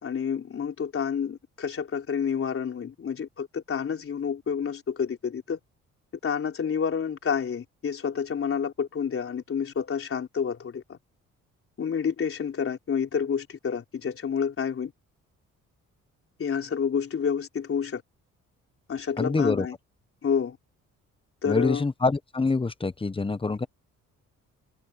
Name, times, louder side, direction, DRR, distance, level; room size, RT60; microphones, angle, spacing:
voice 1, 0.0-5.6 6.2-11.0 11.8-14.9 16.4-18.0 18.9-19.8 20.2-20.6 21.4-21.8, left 7 dB, 45° left, 3.9 m, -29 dB
voice 2, 19.2-19.7 21.5-23.7, left 3 dB, 20° left, 1.0 m, -26 dB
cardioid pair, 90°, 30 cm